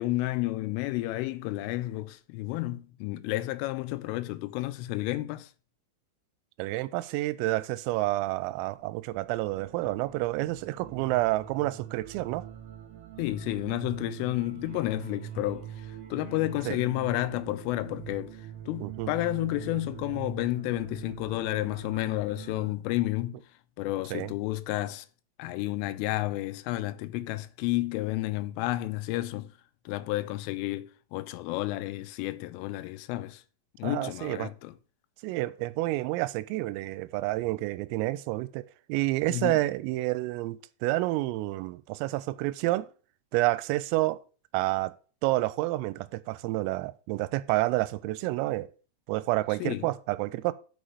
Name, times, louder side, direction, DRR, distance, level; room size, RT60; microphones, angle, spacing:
voice 1, 0.0-5.5 13.2-18.4 18.7-23.4 23.8-25.1 25.4-29.5 29.9-33.4 33.8-34.7 39.3-39.6 49.6-49.9, left 17 dB, 85° left, 3.1 m, -31 dB
voice 2, 6.6-12.5 16.7-16.8 18.8-19.1 24.1-24.3 33.8-34.5 35.2-42.9 43.3-44.2 44.5-44.9 45.2-48.7 49.1-50.5, right 18 dB, 90° right, 3.3 m, -29 dB
sound 1, 8.8-22.7, right 10 dB, 65° right, 2.6 m, -43 dB
6.4 x 6.2 x 6.8 m
omnidirectional pair, 5.9 m